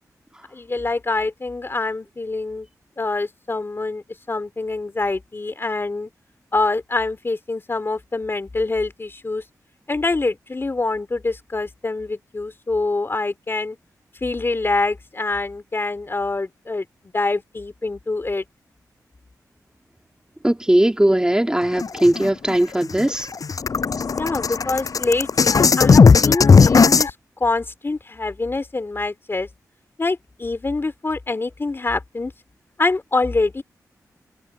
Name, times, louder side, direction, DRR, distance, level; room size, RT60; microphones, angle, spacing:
voice 1, 0.5-2.7 3.0-6.1 6.5-9.4 9.9-13.8 14.2-16.9 17.1-18.4 24.2-27.1 27.4-29.5 30.0-32.3 32.8-33.6, left 3 dB, 35° left, 3.4 m, -25 dB
voice 2, 20.4-23.3, right 1 dB, 10° right, 3.1 m, -19 dB
sound 1, 21.8-22.5 22.9-23.0 23.3-27.1, left 5 dB, 65° left, 6.2 m, -15 dB
cardioid pair, 65°, 7 cm